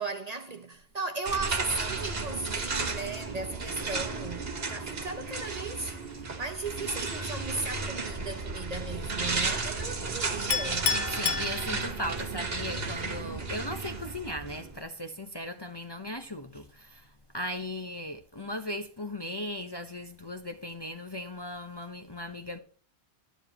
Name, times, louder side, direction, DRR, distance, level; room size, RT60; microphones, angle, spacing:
voice 1, 0.0-11.0, right 3 dB, 35° right, 1.0 m, -36 dB
sound 1, 1.2-14.8, right 3 dB, 60° right, 1.7 m, -34 dB
Chink clink, 10.5-12.2, left 7 dB, 80° left, 1.1 m, -30 dB
voice 2, 11.1-22.6, left 1 dB, 25° left, 0.8 m, -37 dB
12.5 x 10.0 x 2.9 m
omnidirectional pair, 1.2 m